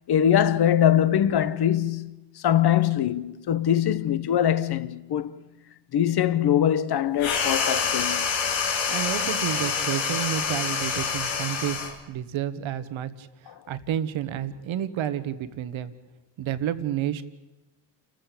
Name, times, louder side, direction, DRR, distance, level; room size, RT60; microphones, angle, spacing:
voice 1, 0.1-5.4 5.9-8.3 13.5-13.6, left 10 dB, 55° left, 1.2 m, -23 dB
sound 1, 7.2-12.0, left 6 dB, 85° left, 3.2 m, -27 dB
voice 2, 8.9-13.3 13.7-15.9 16.4-17.2, right 10 dB, 75° right, 1.5 m, -30 dB
29.0 x 14.5 x 8.5 m
cardioid pair, 100°, 47 cm